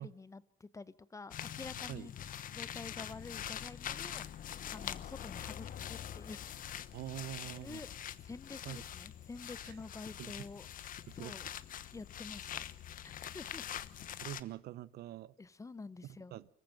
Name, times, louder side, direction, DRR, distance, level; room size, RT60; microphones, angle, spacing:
voice 1, 0.0-2.2 2.5-4.3 4.7-6.6 7.5-7.9 8.2-11.5 11.9-12.7 13.3-13.6 15.4-16.4, left 3 dB, 20° left, 0.9 m, -49 dB
sound 1, 1.3-14.4, left 10 dB, 55° left, 1.1 m, -44 dB
voice 2, 6.9-7.8 8.6-8.8 9.6-9.7 10.2-10.4 11.1-11.3 14.2-15.3 16.3-16.5, right 14 dB, 70° right, 0.8 m, -44 dB
24.5 x 14.5 x 7.8 m
cardioid pair, 110°, 17 cm